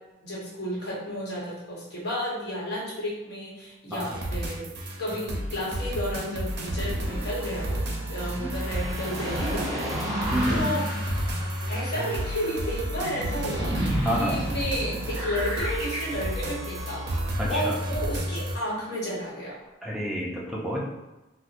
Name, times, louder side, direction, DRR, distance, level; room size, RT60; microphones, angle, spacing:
voice 1, 0.2-4.7 5.0-7.8 8.1-10.8 11.7-17.0 17.5-19.6, equal, 55° left, -6 dB, 1.0 m, -32 dB
sound 1, 3.9-18.6, right 1 dB, 55° right, 0.5 m, -31 dB
sound 2, 5.5-17.8 18.3-18.4, equal, 25° right, 0.9 m, -34 dB
voice 2, 10.3-10.7 14.0-14.5 17.4-17.8 19.8-20.8, equal, ahead, -4 dB, 0.5 m, -29 dB
4.3 x 2.1 x 2.5 m, 1.0 s
head